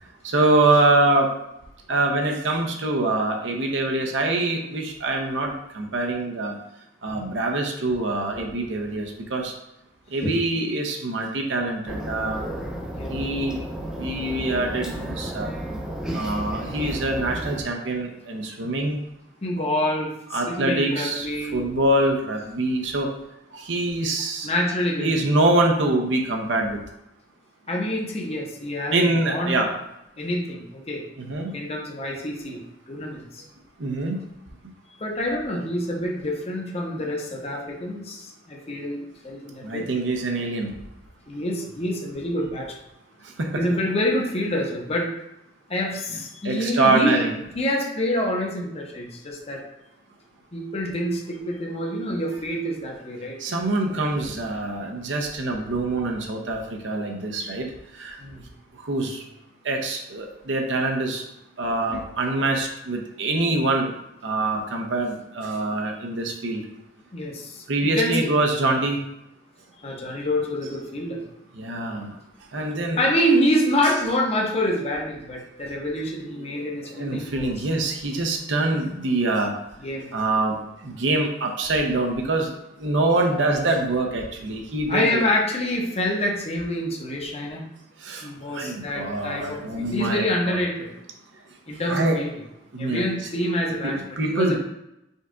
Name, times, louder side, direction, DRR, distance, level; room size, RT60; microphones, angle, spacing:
voice 1, 0.2-1.3 1.9-6.6 7.0-9.5 10.1-12.5 13.1-13.6 14.0-15.5 16.1-19.0 20.3-21.3 21.5-23.1 23.5-24.5 25.0-26.8 28.9-29.7 31.2-31.5 33.8-34.2 37.0-37.1 39.6-40.7 43.4-43.6 46.4-47.4 53.4-57.7 57.9-58.2 58.8-59.2 59.6-61.2 61.6-63.9 64.2-66.6 67.7-69.0 71.5-72.2 72.5-73.0 73.8-73.9 76.4-79.5 80.1-85.2 88.0-90.6 91.9-92.2 92.7-93.0 93.8-94.6, right 2 dB, 75° right, 1 dB, 0.7 m, -24 dB
sound 1, 11.9-17.6, right 1 dB, 5° right, 0.6 m, -32 dB
voice 2, 12.9-13.2 18.6-18.7 19.4-21.6 24.4-25.1 27.7-29.6 30.2-31.0 31.5-33.4 35.0-39.9 41.3-42.7 43.5-45.1 45.7-47.3 47.5-49.6 50.5-53.4 58.2-58.4 67.1-68.3 69.8-71.2 73.0-77.5 79.8-80.1 84.9-87.6 88.2-90.9 91.7-92.3 92.8-94.0 94.2-94.6, left 1 dB, 35° left, -1 dB, 0.8 m, -27 dB
5.3 x 2.3 x 3.7 m, 0.85 s
head